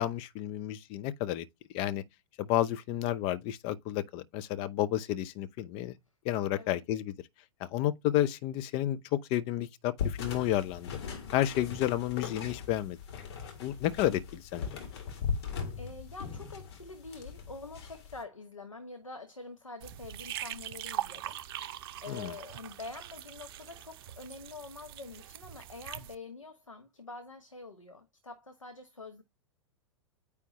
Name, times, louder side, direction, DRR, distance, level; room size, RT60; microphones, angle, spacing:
voice 1, 0.0-1.5 1.7-2.0 2.4-6.0 6.2-7.1 7.6-10.9 11.3-13.0 13.6-14.7 22.1-22.3, left 13 dB, 35° left, 0.7 m, -31 dB
sound 1, 10.0-18.2, left 6 dB, 55° left, 2.2 m, -39 dB
voice 2, 15.8-21.4 22.0-29.2, left 3 dB, 85° left, 1.1 m, -46 dB
sound 2, 19.8-26.2, right 12 dB, 50° right, 0.7 m, -42 dB
9.2 x 3.4 x 3.0 m
figure-of-eight pair, 100°, 16 cm